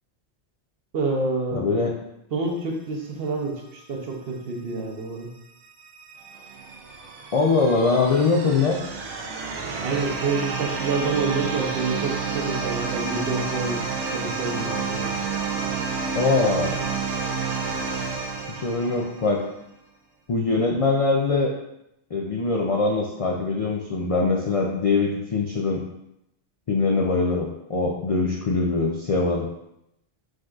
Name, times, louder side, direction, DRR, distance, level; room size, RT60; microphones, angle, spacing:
voice 1, 0.9-1.7 2.3-5.3 9.8-15.2, right 3 dB, 60° right, 1 dB, 0.9 m, -28 dB
voice 2, 1.5-2.0 7.3-8.8 16.1-16.8 18.6-19.5 20.3-21.5 22.1-25.8 26.7-29.5, left 3 dB, 60° left, -1 dB, 0.3 m, -22 dB
sound 1, 5.6-19.4, right 4 dB, 85° right, 1.0 m, -30 dB
4.9 x 3.8 x 2.4 m, 0.83 s
omnidirectional pair, 1.2 m